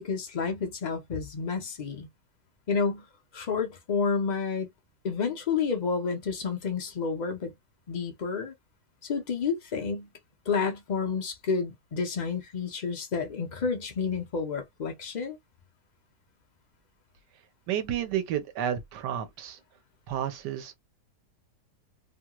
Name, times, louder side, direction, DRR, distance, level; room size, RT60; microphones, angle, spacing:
voice 1, 0.0-2.1 2.7-3.0 3.3-4.7 5.0-7.5 7.9-8.5 9.0-10.1 10.5-15.4, left 5 dB, 65° left, 0.4 m, -30 dB
voice 2, 17.7-19.6 20.1-20.8, right 10 dB, 85° right, 1.4 m, -31 dB
3.1 x 2.3 x 2.9 m
omnidirectional pair, 1.8 m